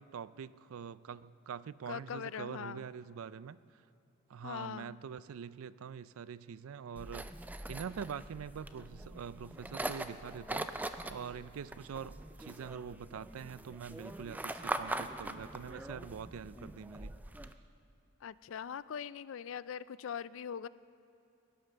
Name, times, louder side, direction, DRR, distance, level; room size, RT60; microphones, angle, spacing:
voice 1, 0.0-3.6 4.3-7.3 7.7-17.2, right 7 dB, 90° right, 17 dB, 0.4 m, -44 dB
voice 2, 1.9-2.8 4.4-5.0 18.2-20.7, left 7 dB, 70° left, 17 dB, 0.4 m, -41 dB
sound 1, 7.0-17.5, right 1 dB, 10° right, 0.3 m, -42 dB
17.0 x 11.5 x 6.7 m, 2.8 s
head